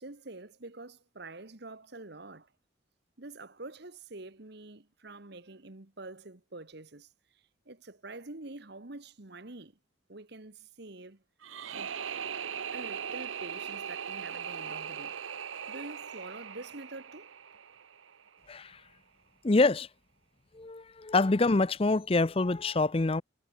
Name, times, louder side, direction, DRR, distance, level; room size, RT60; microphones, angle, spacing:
voice 1, 0.0-2.5 3.2-9.8 10.1-11.2 11.7-12.0 12.7-15.4 15.7-17.3, right 2 dB, 55° right, 1.4 m, -46 dB
sound 1, 11.4-18.4, right 7 dB, 75° right, 0.9 m, -39 dB
voice 2, 18.5-18.8 19.4-19.9 20.5-23.2, left 3 dB, 30° left, 0.5 m, -26 dB
head